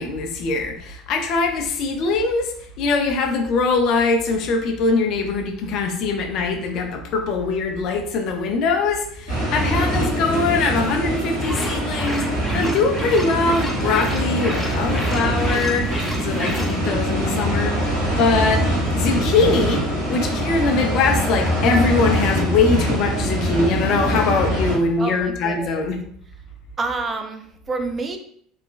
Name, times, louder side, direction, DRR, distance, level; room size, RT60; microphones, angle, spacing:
voice 1, 0.0-2.5 2.8-19.8 20.1-26.0, left 4 dB, 50° left, 4 dB, 0.4 m, -22 dB
sound 1, 9.3-24.8, right 1 dB, 80° right, 1.2 m, -23 dB
sound 2, 11.4-16.7, equal, 5° left, 0.6 m, -32 dB
voice 2, 25.0-25.8 26.8-28.2, right 3 dB, 25° right, 6 dB, 0.3 m, -28 dB
3.0 x 2.1 x 2.3 m, 0.63 s
figure-of-eight pair, 65°, 0 cm